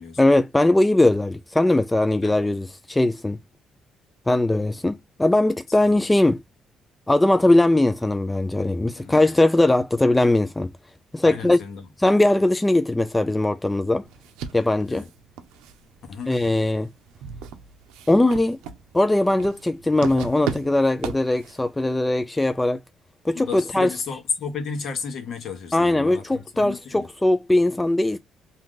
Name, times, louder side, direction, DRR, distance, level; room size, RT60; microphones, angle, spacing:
voice 1, 0.2-3.4 4.3-6.4 7.1-10.7 11.1-11.6 12.0-14.0 14.5-15.0 16.3-16.9 18.1-18.6 18.9-22.8 23.2-23.9 25.7-28.2, left 2 dB, 15° left, 0.3 m, -20 dB
voice 2, 5.7-6.0 8.9-9.4 11.2-11.9 14.9-15.1 16.1-16.3 23.3-27.1, left 5 dB, 60° left, 1.1 m, -33 dB
sound 1, 14.0-21.7, right 8 dB, 90° right, 0.5 m, -37 dB
2.7 x 2.4 x 3.6 m
supercardioid pair, 75°, 0 cm